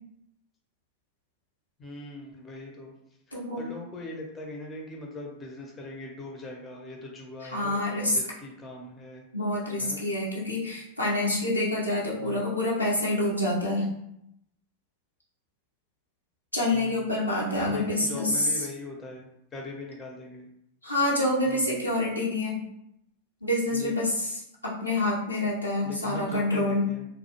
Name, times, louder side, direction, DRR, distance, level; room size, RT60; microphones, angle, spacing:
voice 1, 1.8-2.9 3.3-7.8 8.1-9.3 9.8-10.1 12.2-12.5 16.7-17.2 17.7-20.5 21.5-21.8 23.7-23.9 25.8-27.1, left 2 dB, 20° left, 0 dB, 0.5 m, -40 dB
voice 2, 3.3-3.6 7.5-8.2 9.3-13.8 16.5-18.5 20.8-22.6 23.4-24.1 24.6-26.9, left 1 dB, 85° left, -5 dB, 0.7 m, -27 dB
2.3 x 2.1 x 2.8 m, 0.78 s
figure-of-eight pair, 90°, 0 cm